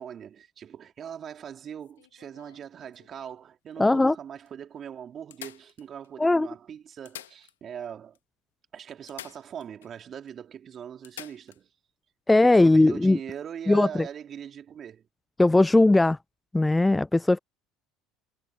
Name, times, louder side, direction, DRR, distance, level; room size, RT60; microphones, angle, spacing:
voice 1, 0.0-8.2 8.7-11.7 12.4-15.1, right 8 dB, 45° right, 2.8 m, -40 dB
sound 1, 1.8-3.4 4.1-4.2 4.5-4.6 5.3-6.3 6.9-7.9 8.2-8.3 9.1-9.9 10.3-10.4 11.0-11.6 13.6-13.8, left 12 dB, 85° left, 1.0 m, -47 dB
voice 2, 3.8-4.1 6.2-6.5 12.3-13.2 13.7-13.9 15.4-16.2 16.5-17.4, left 2 dB, 10° left, 0.3 m, -19 dB
hypercardioid pair, 70°, 0 cm